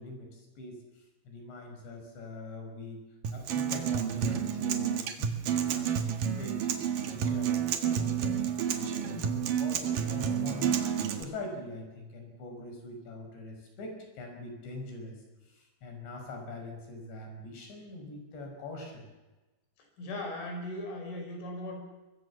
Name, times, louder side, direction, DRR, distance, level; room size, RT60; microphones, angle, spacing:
voice 1, 0.0-3.0 3.3-6.6 7.0-10.8 11.1-15.2 15.5-19.1, left 2 dB, 70° left, 3 dB, 8.0 m, -43 dB
Acoustic guitar, 3.2-11.2, right 8 dB, 60° right, 2.8 m, -30 dB
voice 2, 20.0-21.8, left 1 dB, 90° left, 3 dB, 7.9 m, -38 dB
23.5 x 23.0 x 7.3 m, 1.1 s
omnidirectional pair, 5.3 m